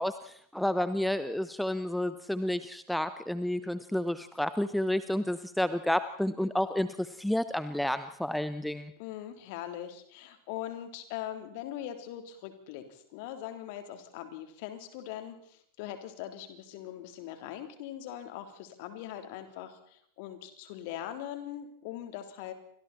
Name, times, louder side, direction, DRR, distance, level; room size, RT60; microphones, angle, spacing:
voice 1, 0.0-8.9, left 1 dB, ahead, 13 dB, 0.9 m, -30 dB
voice 2, 9.0-22.5, left 11 dB, 45° left, 7 dB, 3.6 m, -41 dB
29.0 x 25.0 x 4.4 m, 0.67 s
figure-of-eight pair, 90°, 0 cm